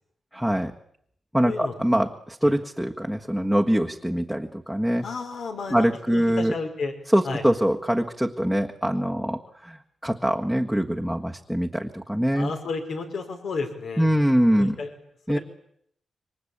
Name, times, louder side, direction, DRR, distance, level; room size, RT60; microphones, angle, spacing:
voice 1, 0.3-0.7 1.3-5.0 5.7-6.5 7.1-12.5 14.0-14.7 15.3-15.4, equal, ahead, 3 dB, 1.6 m, -23 dB
voice 2, 1.4-1.7 2.4-2.5 5.0-6.9 7.2-7.4 12.3-14.1 14.6-14.9 15.3-15.4, left 4 dB, 70° left, 5 dB, 5.2 m, -32 dB
27.0 x 24.0 x 8.7 m, 0.70 s
cardioid pair, 85°, 0 cm